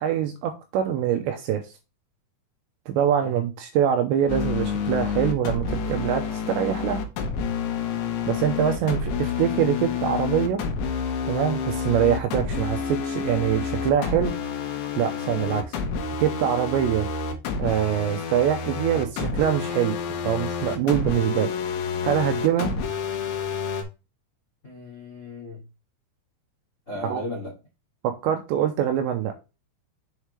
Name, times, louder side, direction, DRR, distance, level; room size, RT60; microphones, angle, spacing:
voice 1, 0.0-1.6 2.9-7.0 8.3-10.6 11.3-14.3 15.0-15.7 16.2-17.1 17.6-20.0 20.2-21.5 22.0-22.7 27.0-27.2 28.0-29.5, right 9 dB, 85° right, 2.7 m, -24 dB
sound 1, 4.3-23.8, left 6 dB, 70° left, 3.0 m, -29 dB
voice 2, 24.6-25.6 26.9-27.5, left 2 dB, 85° left, 0.6 m, -36 dB
7.4 x 4.9 x 3.2 m
omnidirectional pair, 5.7 m